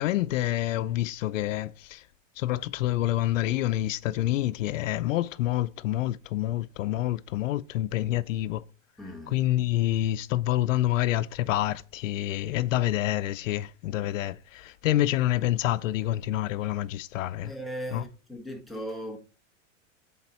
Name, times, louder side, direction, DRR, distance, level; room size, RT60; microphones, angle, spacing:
voice 1, 0.0-2.0 2.4-8.6 9.3-17.5 17.9-18.0, left 14 dB, 85° left, 0.6 m, -27 dB
voice 2, 9.0-9.4 17.4-19.2, equal, ahead, 1.1 m, -37 dB
7.1 x 4.3 x 4.3 m
supercardioid pair, 150°, 38 cm